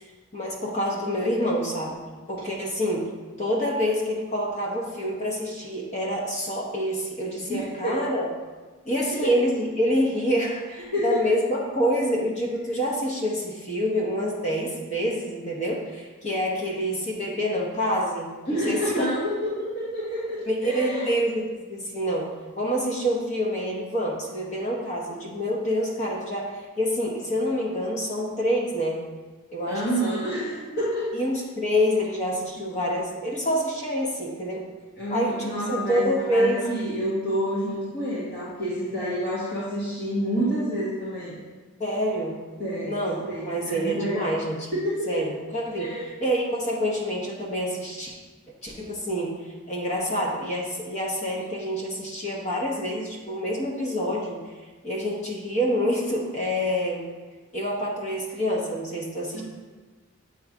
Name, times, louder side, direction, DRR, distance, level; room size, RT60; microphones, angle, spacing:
voice 1, 0.3-1.9 2.3-3.1 3.4-8.3 8.8-19.0 20.5-29.0 29.5-30.2 31.1-34.6 35.1-36.6 41.8-42.4 42.8-44.7 45.1-45.9 46.2-48.2 48.6-49.3 49.7-54.4 54.8-57.1 57.5-59.4, equal, 30° left, -2 dB, 0.8 m, -27 dB
voice 2, 7.5-8.0 10.9-11.2 18.5-21.2 29.7-31.2 35.0-41.3 42.6-44.4 44.7-45.3 45.8-46.1 59.3-59.4, equal, 45° left, -10 dB, 1.6 m, -28 dB
7.9 x 3.1 x 4.8 m, 1.3 s
head